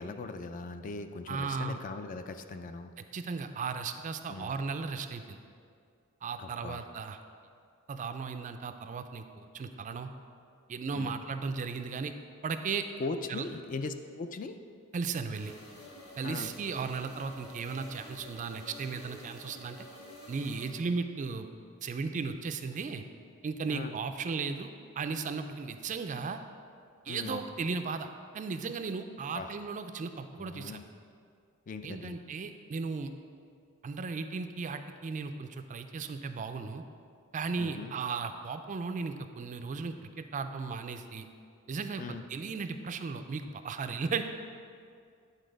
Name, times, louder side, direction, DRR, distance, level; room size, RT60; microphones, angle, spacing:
voice 1, 0.0-2.9 4.3-4.6 6.4-6.8 10.9-11.1 13.0-14.6 16.2-16.5 23.7-23.9 27.1-27.4 29.3-29.5 30.4-30.8 31.7-32.2 37.6-37.9 42.0-42.2, left 3 dB, 35° left, 8 dB, 0.4 m, -39 dB
voice 2, 1.3-1.8 3.0-5.4 6.2-7.2 7.9-10.1 10.7-12.1 12.4-12.9 13.3-13.4 14.9-15.5 16.2-19.9 20.3-21.5 21.8-23.0 23.4-26.4 27.0-28.1 28.3-30.8 31.8-33.1 33.8-36.8 37.3-41.3 41.7-42.0 42.3-44.2, right 4 dB, 35° right, 8 dB, 0.4 m, -36 dB
sound 1, 15.3-20.7, left 1 dB, 75° left, 1.4 m, -49 dB
9.8 x 4.1 x 5.1 m, 2.3 s
head